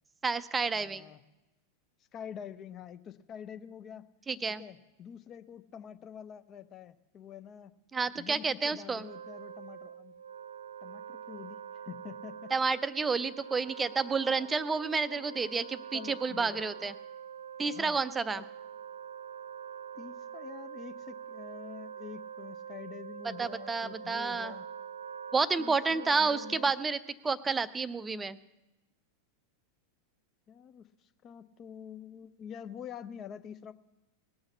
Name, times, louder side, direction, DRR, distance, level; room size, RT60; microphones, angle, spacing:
voice 1, 0.2-1.1 4.3-4.6 7.9-9.1 12.5-16.9 17.6-18.4 23.4-24.5 25.3-27.0 27.2-28.4, right 4 dB, 15° right, 16 dB, 0.5 m, -30 dB
voice 2, 0.7-1.2 2.1-4.1 4.6-7.7 8.1-10.1 10.8-11.6 11.8-12.5 15.1-15.2 15.9-16.6 17.7-18.0 18.3-18.4 19.9-24.7 25.6-26.7 30.5-33.7, left 8 dB, 30° left, 12 dB, 0.6 m, -46 dB
Wind instrument woodwind instrument, 9.0-27.0, right 8 dB, 70° right, 0.4 m, -45 dB
19.0 x 6.4 x 7.1 m, 1.0 s
figure-of-eight pair, 90°, 0 cm